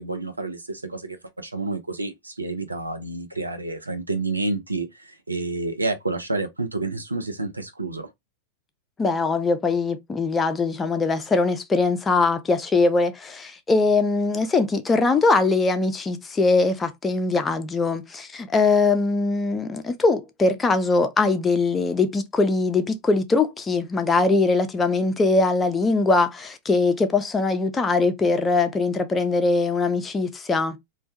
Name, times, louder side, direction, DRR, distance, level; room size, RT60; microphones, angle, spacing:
voice 1, 0.0-8.1, right 2 dB, 80° right, 0.5 m, -29 dB
voice 2, 9.0-30.8, left 3 dB, 15° left, 0.4 m, -21 dB
2.2 x 2.1 x 2.7 m
figure-of-eight pair, 90°, 0 cm